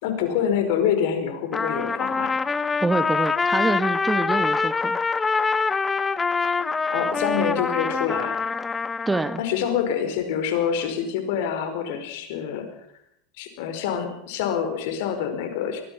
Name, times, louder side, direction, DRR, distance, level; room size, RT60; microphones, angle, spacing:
voice 1, 0.0-2.4 6.9-8.4 9.4-12.7 13.4-15.8, left 8 dB, 65° left, 7 dB, 4.9 m, -26 dB
Trumpet, 1.5-9.4, left 4 dB, 20° left, 1.0 m, -25 dB
voice 2, 2.8-5.0 9.1-9.4, right 3 dB, 10° right, 13 dB, 1.1 m, -25 dB
23.0 x 20.0 x 5.7 m, 0.74 s
hypercardioid pair, 90°, 0 cm